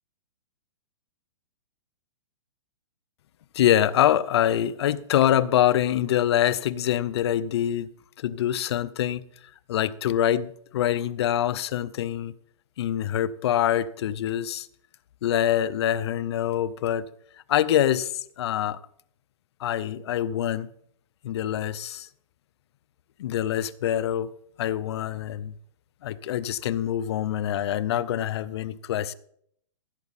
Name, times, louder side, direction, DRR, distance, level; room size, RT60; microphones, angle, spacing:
voice 1, 3.5-7.9 8.2-9.2 9.7-12.3 12.8-14.7 15.2-17.1 17.5-18.8 19.6-20.7 21.2-22.1 23.2-24.3 24.6-25.5 26.0-29.1, left 11 dB, 50° left, 0.6 m, -25 dB
16.0 x 8.1 x 4.1 m
hypercardioid pair, 155°, 17 cm